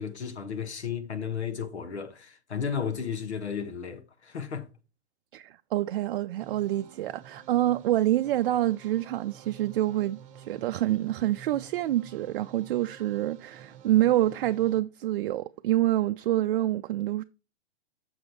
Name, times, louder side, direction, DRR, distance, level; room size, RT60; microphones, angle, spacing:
voice 1, 0.0-4.7, left 7 dB, 85° left, 1.2 m, -33 dB
voice 2, 5.3-17.2, right 14 dB, 55° right, 0.5 m, -27 dB
sound 1, 6.4-14.8, right 8 dB, 25° right, 1.0 m, -50 dB
6.3 x 6.3 x 4.4 m
hypercardioid pair, 115°, 33 cm